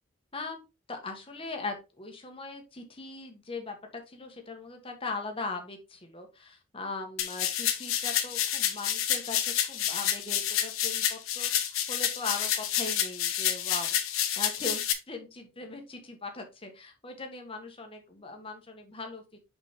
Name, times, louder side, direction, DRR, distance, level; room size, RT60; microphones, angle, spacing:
voice 1, 0.9-14.8 15.1-19.4, left 3 dB, 25° left, 4 dB, 1.5 m, -40 dB
sound 1, 7.2-14.9, left 10 dB, 85° left, 1.1 m, -29 dB
6.9 x 5.2 x 3.7 m, 0.27 s
head